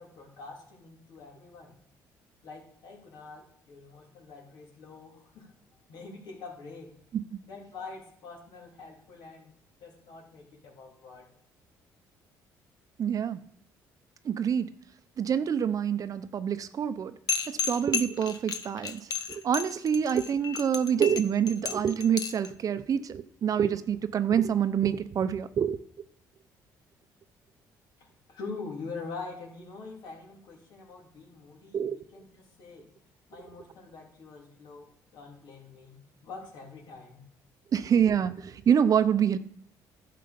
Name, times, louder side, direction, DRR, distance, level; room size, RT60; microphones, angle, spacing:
voice 1, 0.0-1.8 2.4-6.9 7.4-9.5 9.8-11.3 28.0-32.9 33.3-37.2, left 4 dB, 70° left, 0 dB, 3.2 m, -45 dB
voice 2, 13.0-13.4 14.2-14.7 15.2-17.1 17.5-25.8 31.7-32.0 37.7-39.4, right 8 dB, 50° right, 13 dB, 0.7 m, -26 dB
sound 1, 17.3-22.5, left 6 dB, 55° left, 0.9 m, -32 dB
11.0 x 6.7 x 5.2 m, 0.67 s
supercardioid pair, 85°, 8 cm